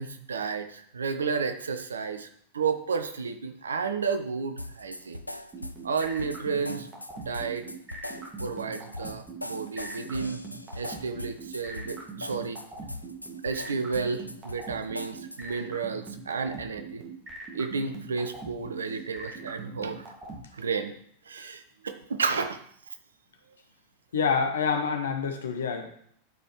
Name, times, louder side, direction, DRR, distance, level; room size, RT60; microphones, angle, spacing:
voice 1, 0.0-2.3 2.5-5.2 5.8-6.9 7.2-7.7 8.4-10.4 10.8-12.6 13.4-17.0 17.5-20.1 20.6-20.9 21.3-22.6, right 5 dB, 70° right, 9 dB, 0.7 m, -32 dB
sound 1, 4.6-15.6, left 1 dB, 90° left, 0.3 m, -41 dB
sound 2, 5.5-20.4, right 3 dB, 20° right, 1.9 m, -41 dB
voice 2, 24.1-25.9, left 5 dB, 65° left, 5 dB, 1.1 m, -27 dB
12.0 x 5.0 x 3.1 m, 0.64 s
figure-of-eight pair, 90°, 0 cm